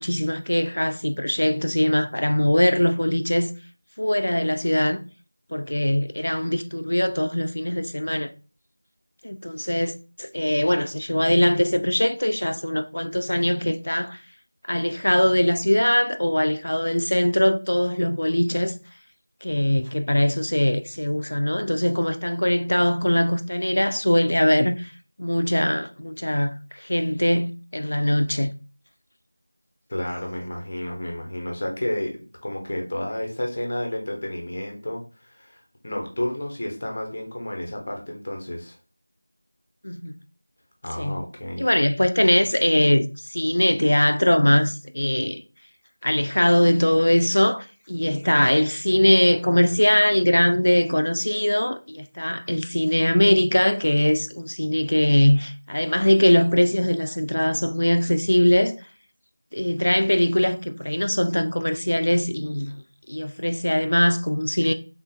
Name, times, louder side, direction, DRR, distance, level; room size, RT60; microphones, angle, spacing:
voice 1, 0.0-3.5 4.0-5.0 5.5-8.3 9.2-9.9 10.2-14.2 14.7-18.7 19.4-24.9 25.2-28.5 39.8-40.1 41.0-41.2 41.6-45.4 46.0-58.8 59.5-62.8 63.1-64.7, left 1 dB, 75° left, 0.3 m, -21 dB
voice 2, 29.9-38.8 40.8-41.7, left 1 dB, 30° left, 0.6 m, -31 dB
3.5 x 2.3 x 2.7 m
figure-of-eight pair, 180°, 0 cm